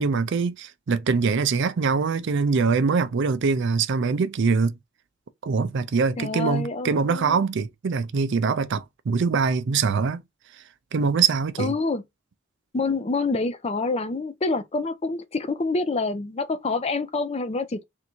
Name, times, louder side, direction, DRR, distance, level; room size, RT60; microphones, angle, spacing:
voice 1, 0.0-4.8 5.4-10.2 10.9-11.7, right 5 dB, 60° right, 0.5 m, -23 dB
voice 2, 6.2-7.4 11.6-12.0 12.7-17.8, left 3 dB, 30° left, 0.5 m, -27 dB
3.5 x 2.7 x 4.3 m
head